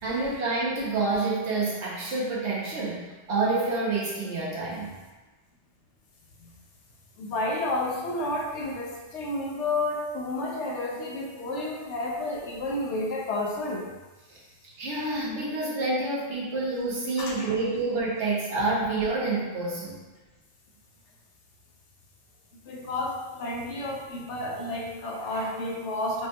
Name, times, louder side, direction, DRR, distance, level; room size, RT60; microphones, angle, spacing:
voice 1, 0.0-4.9 14.3-14.4 14.8-20.0, right 3 dB, 80° right, -6 dB, 1.1 m, -28 dB
voice 2, 7.2-13.9 17.2-17.5 22.7-26.3, left 2 dB, 90° left, -1 dB, 1.0 m, -31 dB
4.8 x 2.8 x 2.2 m, 1.2 s
omnidirectional pair, 1.2 m